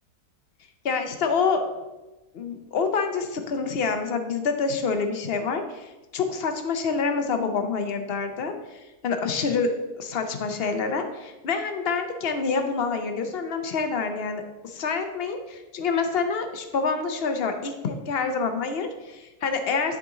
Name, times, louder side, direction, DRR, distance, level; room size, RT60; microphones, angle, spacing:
voice 1, 0.8-1.9 2.3-9.7 10.0-20.0, left 5 dB, 50° left, 6 dB, 0.7 m, -27 dB
10.5 x 3.8 x 3.8 m, 1.1 s
omnidirectional pair, 1.7 m